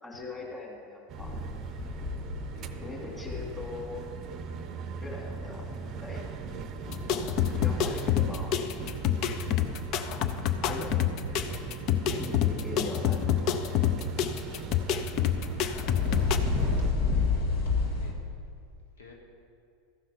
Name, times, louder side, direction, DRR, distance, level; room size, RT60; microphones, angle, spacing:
voice 1, 0.0-1.3 2.8-4.0 5.0-5.7 6.0-6.3 7.6-8.6 10.6-11.1 12.2-13.5, left 3 dB, 10° left, -3 dB, 2.9 m, -40 dB
sound 1, 1.1-16.9, right 6 dB, 40° right, 0.6 m, -39 dB
sound 2, 1.2-18.1, left 4 dB, 65° left, 1.8 m, -34 dB
voice 2, 2.5-3.4 12.9-13.1 18.0-18.1 19.0-19.1, left 5 dB, 80° left, 1 dB, 1.2 m, -54 dB
sound 3, 6.9-16.4, left 10 dB, 50° left, 0.5 m, -28 dB
14.0 x 5.7 x 5.1 m, 2.5 s
hypercardioid pair, 90°, 0 cm